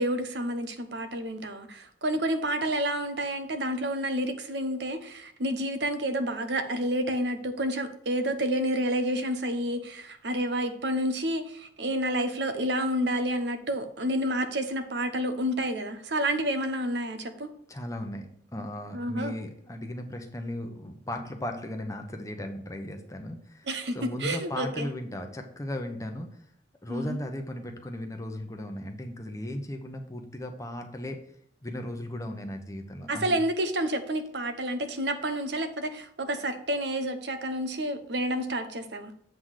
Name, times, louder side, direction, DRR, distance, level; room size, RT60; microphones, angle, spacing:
voice 1, 0.0-17.5 18.9-19.3 23.7-24.9 26.9-27.2 33.1-39.1, right 1 dB, 65° right, 8 dB, 0.9 m, -29 dB
voice 2, 17.7-23.7 23.9-26.3 26.8-31.2 31.6-33.3, left 1 dB, 15° left, 4 dB, 0.8 m, -36 dB
7.8 x 3.9 x 6.3 m, 0.68 s
head